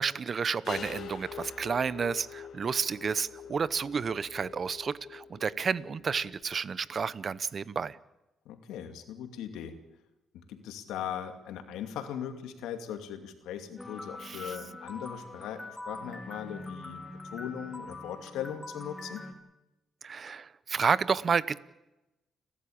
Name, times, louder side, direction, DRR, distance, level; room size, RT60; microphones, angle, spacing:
voice 1, 0.0-8.0 14.2-14.5 20.0-21.6, right 6 dB, 45° right, 18 dB, 0.9 m, -31 dB
sound 1, 0.6-6.4, left 8 dB, 65° left, 2.4 m, -45 dB
voice 2, 8.4-9.8 10.3-19.2, left 9 dB, 90° left, 7 dB, 2.5 m, -39 dB
sound 2, 13.8-19.3, left 2 dB, 15° left, 3.3 m, -43 dB
30.0 x 12.5 x 8.7 m, 0.97 s
cardioid pair, 90°, 0 cm